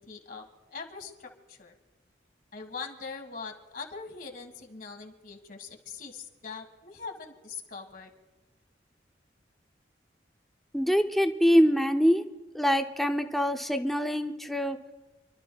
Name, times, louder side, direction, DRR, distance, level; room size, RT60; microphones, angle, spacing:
voice 1, 0.0-1.7 2.5-8.1, left 4 dB, 50° left, 4 dB, 1.6 m, -42 dB
voice 2, 10.7-12.2 12.5-14.8, equal, ahead, 6 dB, 0.5 m, -24 dB
29.0 x 12.5 x 2.3 m, 1.2 s
head